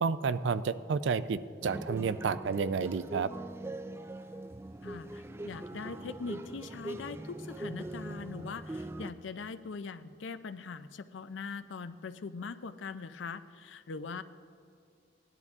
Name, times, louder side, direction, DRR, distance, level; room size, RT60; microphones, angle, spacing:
voice 1, 0.0-3.3, right 5 dB, 85° right, 14 dB, 0.4 m, -31 dB
sound 1, 1.6-9.1, right 1 dB, 15° right, 0.3 m, -41 dB
voice 2, 4.8-14.2, left 4 dB, 90° left, 13 dB, 0.5 m, -42 dB
17.5 x 11.0 x 3.6 m, 2.3 s
head